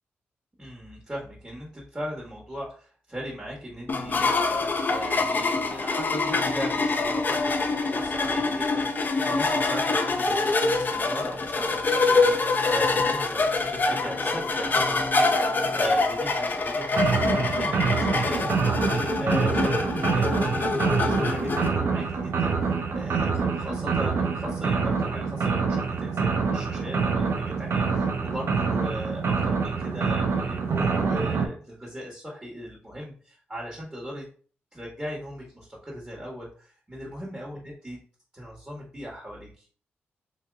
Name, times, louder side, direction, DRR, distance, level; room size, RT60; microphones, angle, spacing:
voice 1, 0.6-34.3 34.7-38.0 38.3-39.6, equal, 20° right, -4 dB, 1.5 m, -38 dB
sound 1, 3.9-21.7, left 3 dB, 45° left, 0.6 m, -25 dB
sound 2, 16.9-31.5, right 5 dB, 65° right, 0.6 m, -26 dB
2.9 x 2.7 x 3.6 m, 0.43 s
cardioid pair, 55°, 5 cm